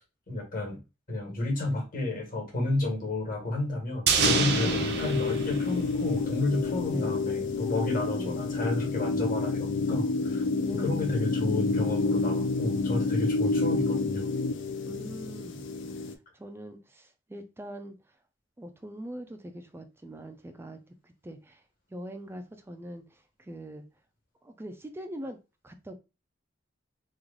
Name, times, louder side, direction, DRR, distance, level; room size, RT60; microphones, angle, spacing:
voice 1, 0.3-0.8 1.1-10.4 10.7-14.3, left 2 dB, 45° left, 1.4 m, -31 dB
sound 1, 4.1-6.5 6.7-6.8, right 6 dB, 60° right, 0.6 m, -28 dB
sound 2, 4.2-16.1, left 3 dB, 70° left, 0.5 m, -29 dB
voice 2, 4.6-4.9 6.9-7.2 8.1-8.6 10.7-11.1 13.4-13.6 14.8-18.2 18.6-20.8 21.0-21.6 21.9-23.9 24.4-25.4 25.6-25.9, equal, 10° right, 0.3 m, -42 dB
3.1 x 2.4 x 3.6 m
head